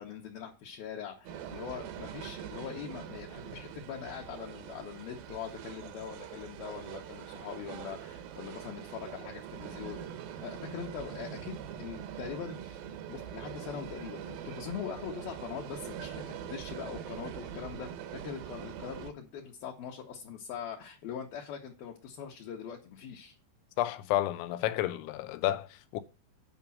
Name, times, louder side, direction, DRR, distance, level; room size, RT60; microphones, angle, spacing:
voice 1, 0.0-10.1 10.4-12.8 13.1-17.9 18.2-23.4, left 8 dB, 70° left, 2.5 m, -42 dB
sound 1, 1.2-19.1, right 9 dB, 75° right, 2.3 m, -43 dB
voice 2, 23.8-26.0, left 14 dB, 85° left, 3.1 m, -31 dB
9.6 x 5.2 x 7.2 m
omnidirectional pair, 5.3 m